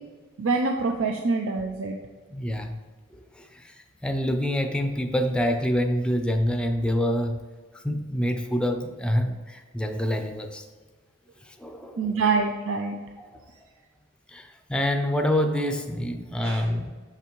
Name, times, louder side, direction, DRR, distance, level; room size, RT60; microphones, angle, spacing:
voice 1, 0.4-2.0 12.0-13.0 16.4-16.7, right 4 dB, 75° right, 3 dB, 0.5 m, -25 dB
voice 2, 2.3-2.8 3.4-3.7 4.0-7.4 7.8-10.6 11.6-12.2 13.2-13.3 14.3-16.9, equal, 5° left, 5 dB, 0.5 m, -26 dB
6.8 x 5.8 x 3.1 m, 1.4 s
head